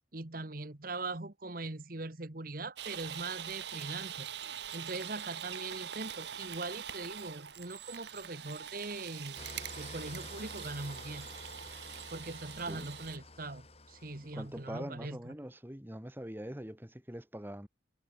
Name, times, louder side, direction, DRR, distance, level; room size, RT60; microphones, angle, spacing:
voice 1, 0.1-4.3 4.7-9.5 9.8-11.3 12.1-15.3, right 3 dB, 50° right, 1.6 m, -41 dB
sound 1, 2.8-13.2, right 9 dB, 65° right, 1.1 m, -44 dB
Engine starting / Idling, 9.4-14.8, left 2 dB, 35° left, 5.2 m, -50 dB
voice 2, 14.3-17.7, equal, 10° right, 1.7 m, -43 dB
head